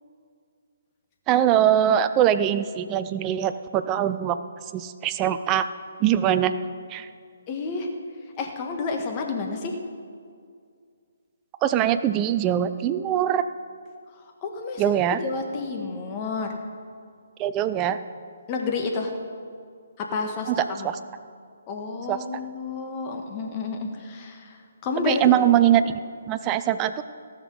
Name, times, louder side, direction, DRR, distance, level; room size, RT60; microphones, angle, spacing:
voice 1, 1.3-4.4 4.7-5.6 6.0-6.5 6.9-7.1 11.6-13.4 14.8-15.2 17.4-18.0 20.5-21.0 22.1-22.2 25.0-25.8 26.3-27.0, right 11 dB, 20° right, 11 dB, 0.5 m, -22 dB
voice 2, 7.5-7.9 8.4-9.7 14.4-15.0 15.2-16.5 18.5-19.1 20.0-20.9 21.7-24.6 24.8-25.3, left 4 dB, 25° left, 2 dB, 1.5 m, -30 dB
17.5 x 6.6 x 5.3 m, 2.2 s
figure-of-eight pair, 135°, 0 cm